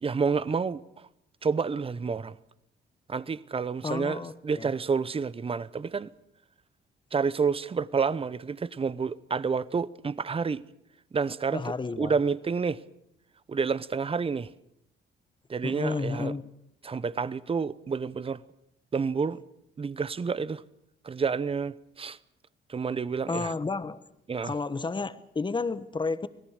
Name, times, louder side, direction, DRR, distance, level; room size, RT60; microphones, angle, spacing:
voice 1, 0.0-1.1 1.4-2.3 3.1-6.1 7.1-10.6 11.1-12.8 13.5-14.5 15.5-16.4 16.8-18.4 18.9-19.4 19.8-20.6 21.0-22.2 22.7-23.5 24.3-24.5, right 5 dB, 30° right, 0.8 m, -29 dB
voice 2, 3.8-4.7 11.5-12.1 15.6-16.4 23.3-24.0 24.4-26.3, left 4 dB, 25° left, 1.2 m, -31 dB
25.5 x 17.5 x 6.6 m
cardioid pair, 90°, 20 cm